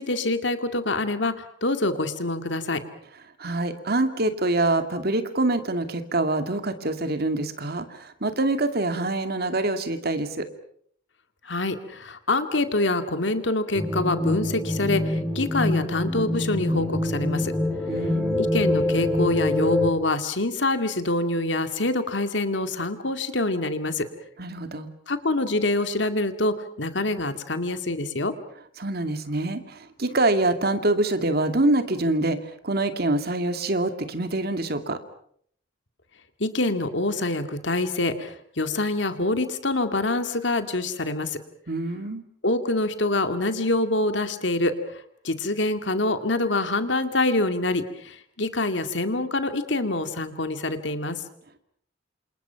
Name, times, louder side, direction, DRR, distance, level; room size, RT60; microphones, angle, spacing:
voice 1, 0.0-2.8 11.4-17.5 18.4-24.0 25.1-28.3 36.4-41.4 42.4-44.7 45.2-51.2, left 2 dB, 65° left, 8 dB, 2.3 m, -25 dB
voice 2, 3.4-10.5 17.9-18.4 24.4-24.9 28.8-35.0 41.7-42.2, right 2 dB, 55° right, 8 dB, 2.3 m, -25 dB
sound 1, 13.7-19.9, left 1 dB, ahead, 5.4 m, -25 dB
28.5 x 27.0 x 5.9 m, 0.65 s
head